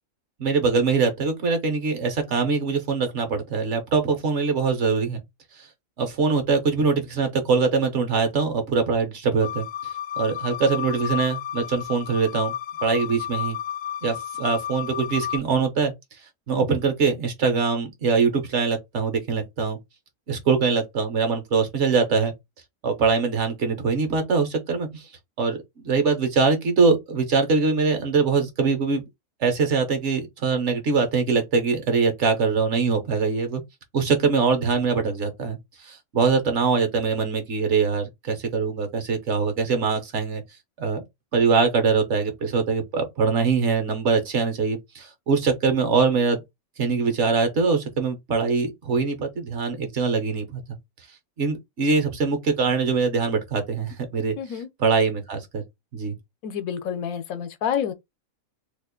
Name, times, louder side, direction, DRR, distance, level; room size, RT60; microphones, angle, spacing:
voice 1, 0.4-5.2 5.6-5.7 6.0-9.7 10.2-12.5 12.8-13.6 14.0-15.9 16.5-19.8 20.3-22.3 22.8-25.1 25.4-29.0 29.4-33.6 33.9-40.4 40.8-41.0 41.3-46.4 46.8-50.6 51.4-54.4 54.8-55.6 55.9-56.2, right 4 dB, 60° right, 1.1 m, -23 dB
sound 1, 9.4-15.4, left 10 dB, 70° left, 1.0 m, -32 dB
voice 2, 54.4-54.7 56.4-57.9, left 8 dB, 85° left, 1.1 m, -28 dB
2.8 x 2.4 x 3.6 m
omnidirectional pair, 1.5 m